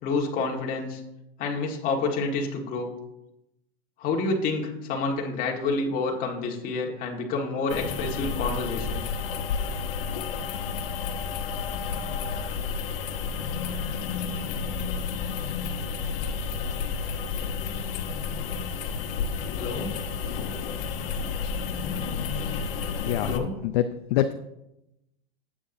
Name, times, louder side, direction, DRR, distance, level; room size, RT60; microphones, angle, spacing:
voice 1, 0.0-1.0 1.4-2.9 4.0-9.0 19.6-19.9 21.4-21.5 23.2-23.5, left 3 dB, 30° left, 1 dB, 1.6 m, -28 dB
sound 1, 7.7-23.4, left 5 dB, 70° left, 1.3 m, -31 dB
voice 2, 23.0-24.3, left 11 dB, 50° left, 8 dB, 0.5 m, -26 dB
12.5 x 8.5 x 2.7 m, 0.88 s
supercardioid pair, 155°, 29 cm